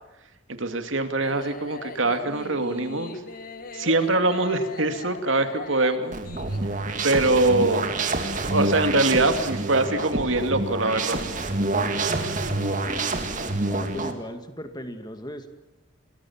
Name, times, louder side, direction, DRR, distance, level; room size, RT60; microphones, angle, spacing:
voice 1, 0.5-3.1 3.7-6.2 7.0-7.9 8.5-11.2, right 2 dB, 65° right, 8 dB, 2.5 m, -23 dB
sound 1, 1.2-6.6, left 3 dB, 45° left, 1.6 m, -39 dB
sound 2, 6.1-14.1, right 2 dB, 40° right, 2.4 m, -27 dB
voice 2, 12.5-13.0 13.6-15.5, equal, 20° left, 8 dB, 2.0 m, -37 dB
28.5 x 20.5 x 7.4 m, 1.0 s
head